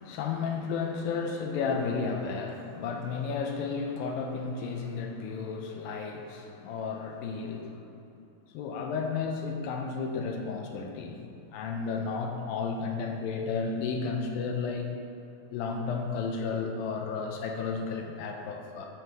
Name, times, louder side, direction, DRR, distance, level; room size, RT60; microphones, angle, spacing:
voice 1, 0.0-7.9 8.5-11.2 11.5-14.9 15.5-18.9, left 5 dB, 80° left, 2 dB, 2.3 m, -33 dB
12.5 x 5.5 x 3.1 m, 2.6 s
omnidirectional pair, 4.3 m